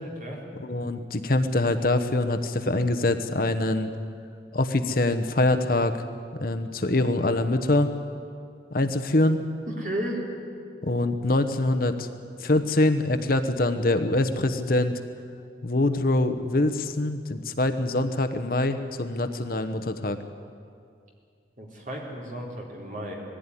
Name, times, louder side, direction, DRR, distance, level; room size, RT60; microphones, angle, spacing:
voice 1, 0.0-0.4 9.7-10.2 21.6-23.2, right 1 dB, 45° right, -1 dB, 3.9 m, -34 dB
voice 2, 0.6-3.9 4.5-5.9 6.4-7.9 8.7-9.4 10.8-12.1 12.4-15.0 15.6-20.2, left 2 dB, 50° left, 8 dB, 1.0 m, -24 dB
20.0 x 15.0 x 9.9 m, 2.4 s
head